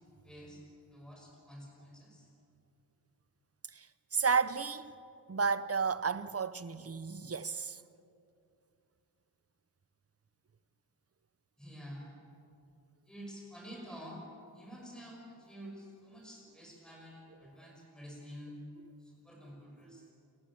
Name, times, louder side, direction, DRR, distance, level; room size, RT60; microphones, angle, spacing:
voice 1, 0.2-0.6 0.9-2.3 11.6-12.2 13.1-14.2 14.5-18.6 19.0-20.1, equal, ahead, 5.9 m, -49 dB
voice 2, 3.7-4.9 5.3-7.8 17.4-17.5 19.9-20.1, right 5 dB, 35° right, 0.8 m, -33 dB
28.5 x 15.0 x 8.6 m
wide cardioid pair, 105°, 39 cm